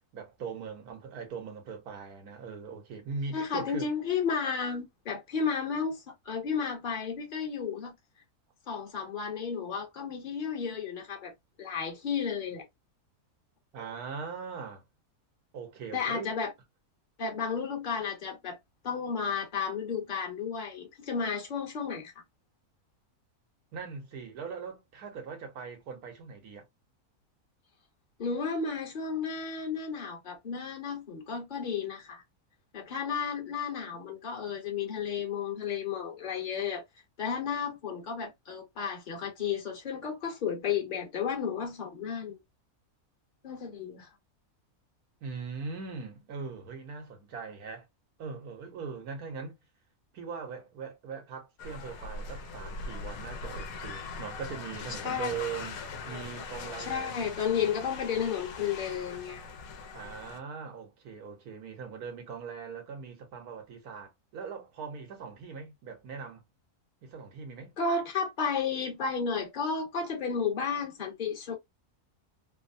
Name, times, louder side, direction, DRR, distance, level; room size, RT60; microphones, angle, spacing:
voice 1, 0.1-3.9 13.7-14.8 15.5-16.4 23.7-26.7 45.2-47.9 48.2-49.5 50.1-57.3 59.9-66.4 67.0-67.8, right 5 dB, 85° right, 1.5 m, -40 dB
voice 2, 3.3-7.9 8.7-11.3 11.6-12.6 15.9-16.5 17.2-18.6 18.8-22.1 28.2-32.2 32.7-36.8 37.2-42.4 43.4-44.1 55.0-55.3 56.9-59.5 67.8-71.5, left 6 dB, 40° left, 1.0 m, -33 dB
sound 1, 51.6-60.4, left 4 dB, 75° left, 1.1 m, -41 dB
3.3 x 2.1 x 2.5 m
omnidirectional pair, 1.5 m